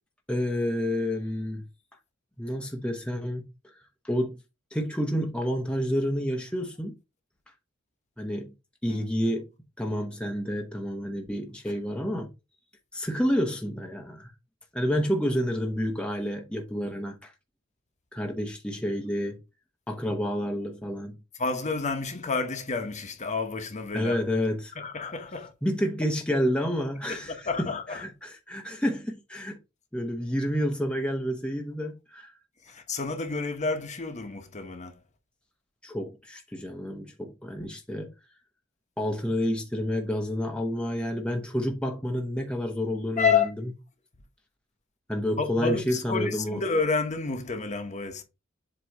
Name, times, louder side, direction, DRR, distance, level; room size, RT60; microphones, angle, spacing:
voice 1, 0.3-1.6 2.4-3.4 4.0-4.4 4.7-7.0 8.2-8.5 8.8-9.5 9.8-12.3 12.9-14.3 14.7-17.3 18.1-19.4 19.9-21.2 23.9-24.7 25.6-29.6 29.9-32.3 35.8-38.1 39.0-43.5 45.1-46.6, equal, 5° left, 0.8 m, -29 dB
voice 2, 21.4-24.2 24.8-25.5 27.1-28.0 32.6-35.0 43.2-43.5 45.4-48.2, left 4 dB, 35° left, 1.1 m, -29 dB
7.7 x 3.1 x 4.0 m
head